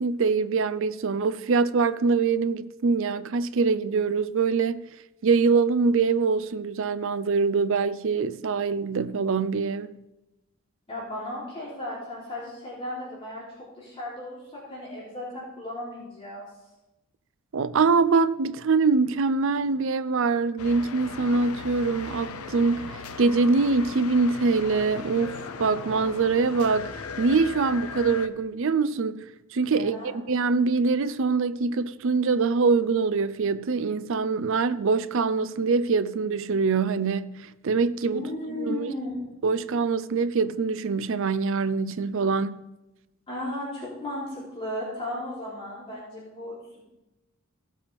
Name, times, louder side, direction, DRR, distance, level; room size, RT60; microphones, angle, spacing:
voice 1, 0.0-4.8 5.2-10.0 17.5-29.2 29.5-30.0 30.3-38.9 39.4-42.6, right 4 dB, 60° right, 0.5 m, -24 dB
voice 2, 10.9-13.4 13.8-16.5 29.7-30.1 38.1-39.1 43.3-46.5, left 1 dB, 25° left, 3.5 m, -35 dB
sound 1, 20.6-28.3, left 4 dB, 90° left, 0.8 m, -38 dB
16.5 x 7.6 x 3.5 m
head